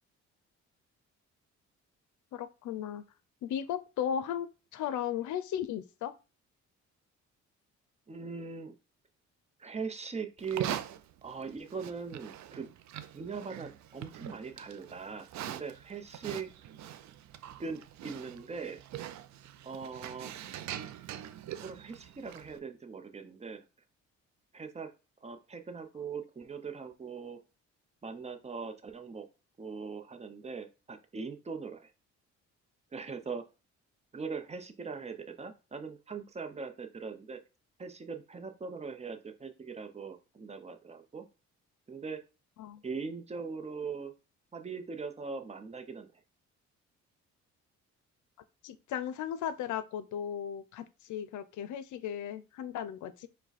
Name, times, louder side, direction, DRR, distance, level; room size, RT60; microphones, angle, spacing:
voice 1, 2.3-3.0 3.4-4.5 4.7-6.1 42.6-42.8 48.6-53.3, left 9 dB, 75° left, 0.6 m, -36 dB
voice 2, 8.1-8.7 9.6-10.8 11.2-12.7 13.1-16.5 17.6-19.2 19.6-20.3 21.5-23.6 24.5-24.9 25.2-27.4 28.0-29.3 29.6-31.9 32.9-33.4 34.1-37.4 37.8-41.3 41.9-42.2 42.8-44.1 44.5-46.1, right 5 dB, 20° right, 0.7 m, -41 dB
Livestock farm animals working animals, 10.4-22.6, right 11 dB, 65° right, 0.5 m, -43 dB
4.9 x 2.3 x 4.1 m
cardioid pair, 90°, 30 cm